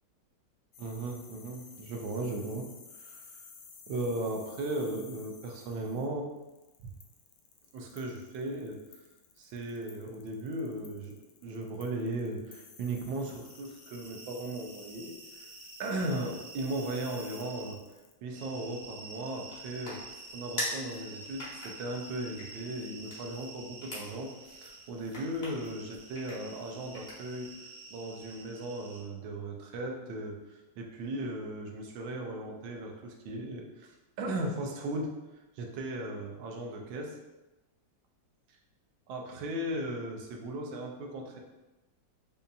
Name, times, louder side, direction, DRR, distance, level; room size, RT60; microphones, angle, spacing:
sound 1, 0.7-18.1, left 5 dB, 85° left, 0.8 m, -54 dB
voice 1, 0.8-2.7 3.0-3.5 3.9-6.3 7.7-8.8 9.4-11.1 11.4-15.1 15.4-15.5 15.8-17.8 18.2-20.0 20.3-35.1 35.6-37.2 39.1-41.4, right 1 dB, 85° right, 1 dB, 1.4 m, -37 dB
sound 2, 13.1-17.7 18.3-29.0, right 3 dB, 70° right, 1.2 m, -49 dB
sound 3, 18.8-27.5, left 1 dB, 30° left, 1.0 m, -44 dB
5.2 x 2.7 x 2.3 m, 1.0 s
omnidirectional pair, 2.1 m